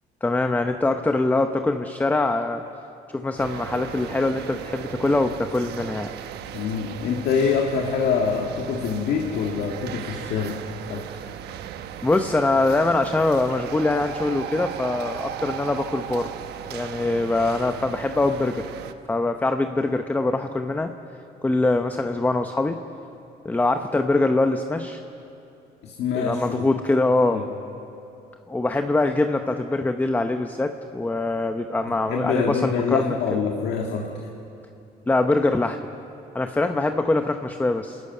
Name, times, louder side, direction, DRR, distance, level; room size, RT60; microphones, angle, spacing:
voice 1, 0.2-2.6 3.1-6.1 12.0-16.3 16.7-18.7 19.1-20.9 21.4-22.8 23.4-25.0 26.1-27.4 28.5-33.2 35.1-35.8 36.3-38.0, left 2 dB, 10° left, 7 dB, 0.8 m, -23 dB
sound 1, 3.4-18.9, right 10 dB, 75° right, 1.1 m, -36 dB
voice 2, 6.5-10.6 10.9-11.1 25.8-26.7 27.3-27.4 32.1-34.1, left 6 dB, 75° left, 1 dB, 1.9 m, -25 dB
26.0 x 14.0 x 9.3 m, 2.8 s
cardioid pair, 110°, 17 cm